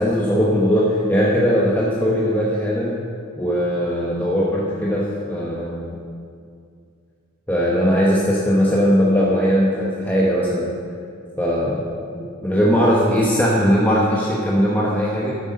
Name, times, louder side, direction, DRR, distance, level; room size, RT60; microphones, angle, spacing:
voice 1, 0.0-3.0 3.4-6.0 7.5-10.7 11.4-15.4, equal, 10° left, -5 dB, 1.1 m, -19 dB
13.5 x 8.1 x 5.4 m, 2.3 s
head